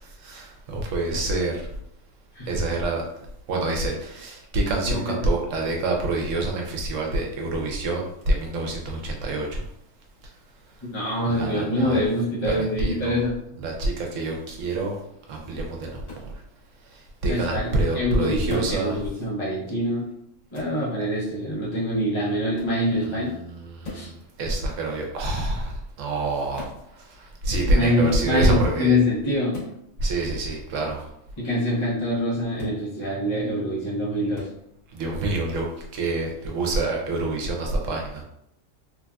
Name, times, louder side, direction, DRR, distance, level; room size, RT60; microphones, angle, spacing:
voice 1, 0.2-1.6 2.5-3.0 3.5-9.6 11.3-12.0 12.4-13.2 13.6-15.0 15.3-16.0 17.2-19.0 23.0-24.1 24.4-26.7 27.2-29.0 30.0-31.0 34.9-35.7 35.9-38.2, right 2 dB, 75° right, 0 dB, 1.0 m, -26 dB
voice 2, 4.9-5.3 10.9-13.3 17.3-17.7 17.9-20.1 20.5-23.3 23.9-24.1 27.7-29.6 31.4-34.5, left 1 dB, 25° left, -8 dB, 0.7 m, -25 dB
sound 1, 16.0-16.3 18.5-18.8 20.5-20.8 22.5-22.8 23.8-24.1 26.5-26.8 29.5-29.8 32.5-32.8 34.3-34.5, left 3 dB, 85° left, 1.5 m, -38 dB
3.1 x 2.5 x 2.2 m, 0.76 s
omnidirectional pair, 1.3 m